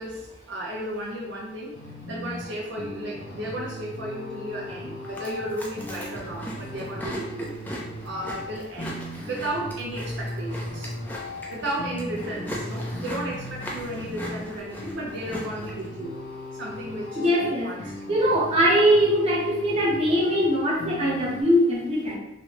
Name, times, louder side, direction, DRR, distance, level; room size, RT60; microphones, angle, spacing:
voice 1, 0.0-1.7 2.1-7.5 8.0-10.9 11.5-16.2 16.5-18.1, right 1 dB, 65° right, -3 dB, 0.5 m, -34 dB
sound 1, 1.7-21.4, left 1 dB, 50° left, 0.6 m, -38 dB
Chewing mastication, 5.0-15.9, equal, 10° left, 0.4 m, -39 dB
voice 2, 17.2-17.7 18.1-22.2, equal, 30° right, -5 dB, 0.9 m, -21 dB
3.1 x 2.7 x 2.9 m, 0.90 s
head